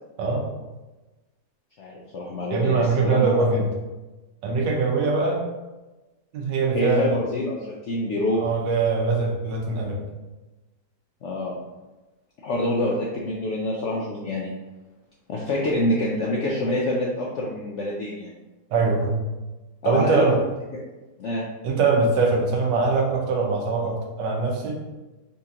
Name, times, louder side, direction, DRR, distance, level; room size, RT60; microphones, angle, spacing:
voice 1, 1.8-3.4 6.7-8.4 11.2-11.6 12.4-14.5 15.3-18.3 19.8-20.2 21.2-21.4, left 1 dB, 80° left, -3 dB, 0.6 m, -26 dB
voice 2, 2.5-3.7 4.4-5.4 6.3-7.2 8.4-10.0 18.7-19.1 19.8-20.4 21.6-24.8, right 4 dB, 85° right, 0 dB, 1.5 m, -22 dB
4.3 x 2.8 x 3.6 m, 1.1 s
omnidirectional pair, 1.9 m